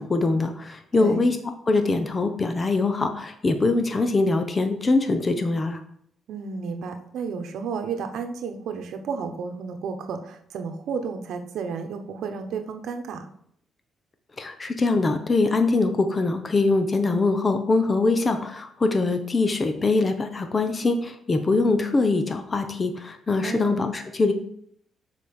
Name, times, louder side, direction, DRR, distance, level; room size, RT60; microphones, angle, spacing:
voice 1, 0.0-1.4 1.7-5.8 14.4-24.3, left 3 dB, 30° left, 7 dB, 0.9 m, -23 dB
voice 2, 0.9-1.3 6.3-13.3 23.4-23.8, right 5 dB, 75° right, 6 dB, 1.0 m, -32 dB
6.7 x 4.9 x 5.3 m, 0.67 s
cardioid pair, 90°, 0 cm